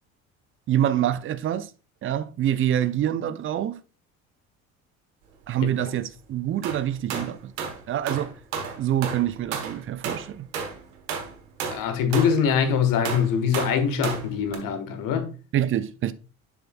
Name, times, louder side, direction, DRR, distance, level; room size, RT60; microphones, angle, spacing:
voice 1, 0.7-1.7 2.0-3.8 5.5-8.3 8.8-10.5 15.5-16.1, right 11 dB, 30° right, 0.5 m, -26 dB
sound 1, 6.6-12.5 13.0-14.6, right 6 dB, 70° right, 1.2 m, -32 dB
voice 2, 11.7-15.3, left 7 dB, 50° left, 1.3 m, -23 dB
7.1 x 6.8 x 2.3 m
figure-of-eight pair, 55°, 42 cm